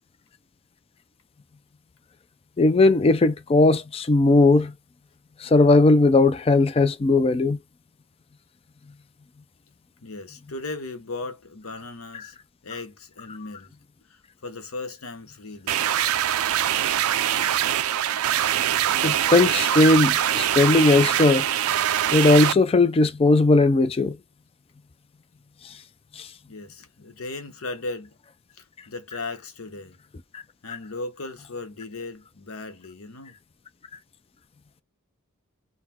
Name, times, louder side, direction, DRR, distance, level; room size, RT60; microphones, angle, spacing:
voice 1, 2.6-4.7 5.4-7.6 12.1-12.3 19.0-21.5 22.1-24.2 25.6-25.8 26.2-26.3 30.3-30.4 30.7-30.8, left 2 dB, 25° left, 0.4 m, -18 dB
voice 2, 10.0-12.4 12.6-13.7 14.1-15.8 26.5-28.1 28.5-30.0 30.6-33.4, left 3 dB, 75° left, 0.9 m, -37 dB
sound 1, 15.7-22.5, right 11 dB, 80° right, 0.4 m, -23 dB
4.0 x 2.1 x 4.2 m
head